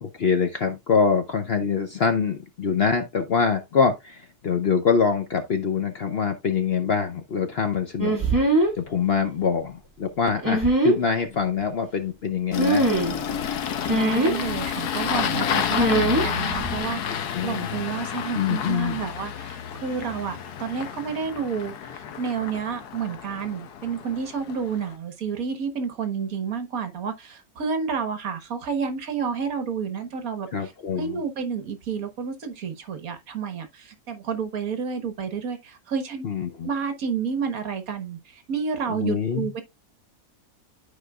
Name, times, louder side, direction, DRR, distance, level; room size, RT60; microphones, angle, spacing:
voice 1, 0.0-8.2 8.8-12.9 17.3-17.7 18.3-19.0 30.5-31.2 36.2-36.7 39.0-39.5, left 6 dB, 55° left, 0.7 m, -24 dB
sound 1, 8.0-8.7 10.4-10.9 12.6-13.2 13.8-14.3 15.8-16.2 16.5-16.8, right 1 dB, 10° right, 1.7 m, -21 dB
Engine starting, 12.5-24.9, left 8 dB, 85° left, 1.4 m, -30 dB
voice 2, 13.9-30.7 31.0-36.3 36.6-39.6, right 6 dB, 65° right, 1.5 m, -30 dB
12.0 x 4.8 x 2.3 m
omnidirectional pair, 1.7 m